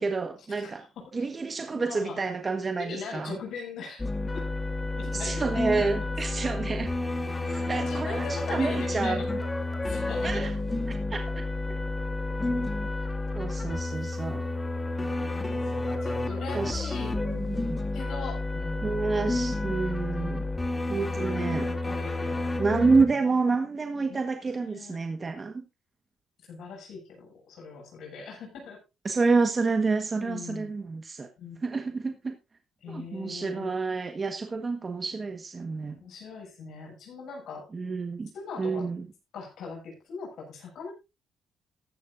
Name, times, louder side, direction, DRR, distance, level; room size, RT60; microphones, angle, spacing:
voice 1, 0.0-0.8 1.1-3.4 5.1-6.9 7.4-9.2 10.2-10.5 10.9-11.4 11.7-11.8 13.3-14.4 16.5-17.8 18.8-20.4 20.9-21.7 22.6-25.5 29.0-31.3 31.6-32.4 32.9-35.9 37.7-38.3 38.6-39.1, right 4 dB, 30° right, 1.4 m, -29 dB
voice 2, 0.6-1.2 1.7-2.2 2.8-4.1 4.3-4.5 5.0-5.4 7.6-9.3 9.8-10.4 14.9-17.1 17.9-19.0 21.3-23.1 24.1-24.3 24.6-25.0 26.5-28.8 30.2-30.7 31.4-31.6 32.8-33.7 35.9-37.7 38.3-38.9 39.3-40.9, left 4 dB, 75° left, 7.5 m, -41 dB
sound 1, 4.0-23.1, left 2 dB, 20° left, 2.2 m, -30 dB
15.0 x 12.0 x 2.6 m
cardioid pair, 90°, 0 cm